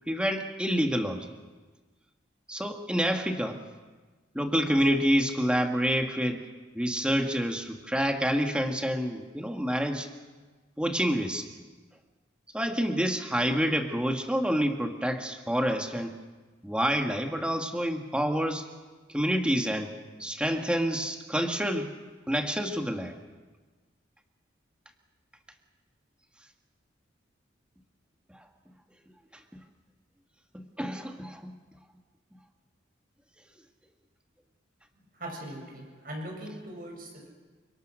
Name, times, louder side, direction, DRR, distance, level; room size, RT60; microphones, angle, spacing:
voice 1, 0.1-1.3 2.5-3.6 4.3-6.4 6.7-10.1 10.8-11.5 12.5-16.1 16.6-18.6 19.1-19.9 20.2-21.9 22.3-23.1 28.3-28.4 30.5-31.5, equal, 5° right, 4 dB, 1.9 m, -28 dB
voice 2, 35.2-37.3, right 1 dB, 45° right, 1 dB, 7.4 m, -40 dB
29.5 x 25.0 x 6.5 m, 1.3 s
head